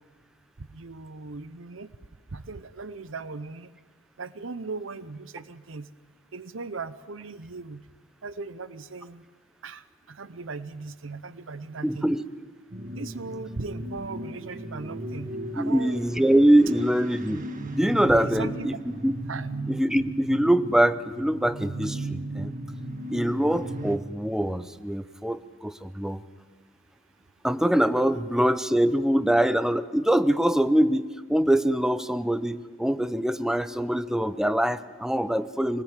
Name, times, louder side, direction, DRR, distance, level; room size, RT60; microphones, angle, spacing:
voice 1, 0.6-1.9 2.3-3.7 4.2-5.9 6.3-7.8 8.2-9.2 9.6-12.1 12.9-16.0 18.1-18.7 19.3-19.5, right 4 dB, 70° right, 15 dB, 0.8 m, -38 dB
voice 2, 11.8-12.2 15.6-17.5 17.7-19.1 19.7-22.5 23.1-26.2 27.4-35.8, right 1 dB, 5° right, 12 dB, 0.7 m, -23 dB
sound 1, 12.7-24.0, right 1 dB, 40° right, 1.5 m, -36 dB
24.5 x 20.0 x 9.1 m, 1.4 s
head